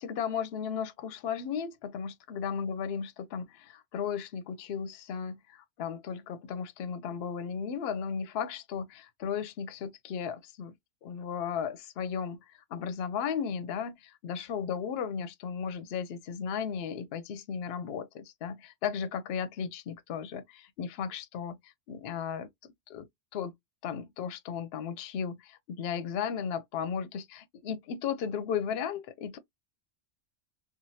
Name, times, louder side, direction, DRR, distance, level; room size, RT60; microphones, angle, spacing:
voice 1, 0.0-10.7 11.0-12.4 12.7-23.5 23.8-29.4, left 7 dB, 65° left, 0.7 m, -35 dB
3.1 x 2.3 x 2.6 m
omnidirectional pair, 1.2 m